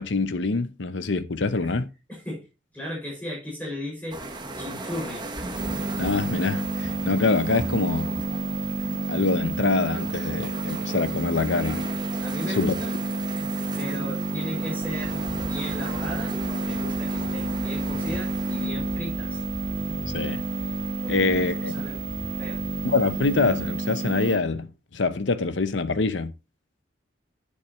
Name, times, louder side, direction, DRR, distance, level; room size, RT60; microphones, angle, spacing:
voice 1, 0.0-1.9 6.0-8.2 9.1-11.9 12.6-12.7 20.1-20.5 21.1-21.7 22.8-26.3, left 3 dB, 70° left, 0.8 m, -25 dB
voice 2, 2.1-2.5 2.7-4.2 4.6-5.3 12.2-12.9 13.8-16.3 16.6-19.4 21.0-21.3 21.7-22.0 22.4-22.6, left 1 dB, 10° left, 6.1 m, -35 dB
sound 1, 4.1-18.7, right 2 dB, 25° right, 1.4 m, -38 dB
sound 2, 5.6-24.4, right 2 dB, 45° right, 1.7 m, -30 dB
Wind, 14.6-23.7, equal, 75° right, 2.5 m, -41 dB
10.5 x 7.9 x 3.1 m
head